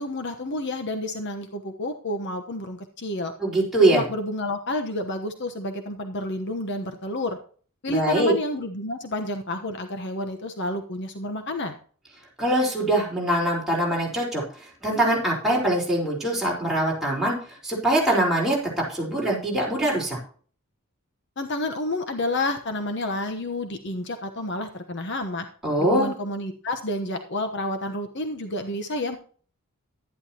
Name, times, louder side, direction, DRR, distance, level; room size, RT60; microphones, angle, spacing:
voice 1, 0.0-3.3 3.9-7.4 7.8-11.7 21.4-25.5 25.8-29.2, left 1 dB, 55° left, 6 dB, 1.1 m, -30 dB
voice 2, 3.4-4.0 7.9-8.3 12.4-18.6 18.9-20.2 25.6-26.1, right 1 dB, ahead, -4 dB, 4.3 m, -23 dB
11.5 x 11.0 x 2.9 m, 0.43 s
head